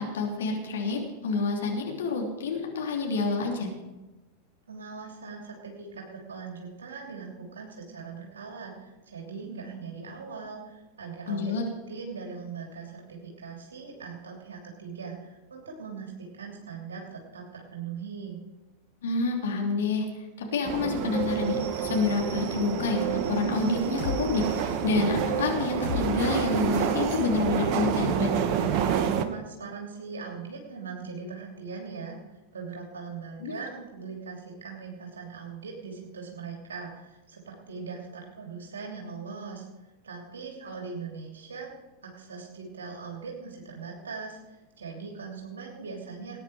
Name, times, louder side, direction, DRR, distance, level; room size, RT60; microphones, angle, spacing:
voice 1, 0.0-3.7 11.3-11.6 19.0-20.1 20.4-28.4 33.4-33.5, left 3 dB, 60° left, 0 dB, 3.0 m, -28 dB
voice 2, 4.7-11.5 11.9-18.4 29.3-32.2 32.5-39.7 40.0-41.7 42.0-46.4, right 5 dB, 65° right, 0 dB, 3.0 m, -40 dB
sound 1, 20.6-29.2, right 8 dB, 40° right, 1.2 m, -28 dB
sound 2, 23.5-24.2 24.4-24.8 25.4-26.0 26.3-26.6, left 7 dB, 80° left, 5.1 m, -35 dB
20.0 x 9.7 x 4.9 m, 1.1 s
figure-of-eight pair, 90°, 0 cm